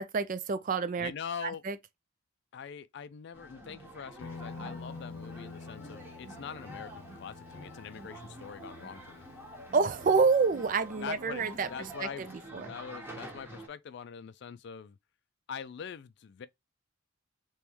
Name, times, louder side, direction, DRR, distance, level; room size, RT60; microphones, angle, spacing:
voice 1, 0.0-1.1 1.4-1.8 9.7-11.7 12.0-12.7, right 4 dB, 40° right, 0.4 m, -28 dB
voice 2, 1.0-1.6 2.5-9.2 11.0-15.0 15.5-16.5, left 7 dB, 55° left, 0.3 m, -43 dB
sound 1, 3.3-13.7, equal, 10° right, 1.0 m, -47 dB
Guitar, 4.2-12.0, left 4 dB, 90° left, 0.7 m, -49 dB
3.4 x 3.0 x 2.9 m
head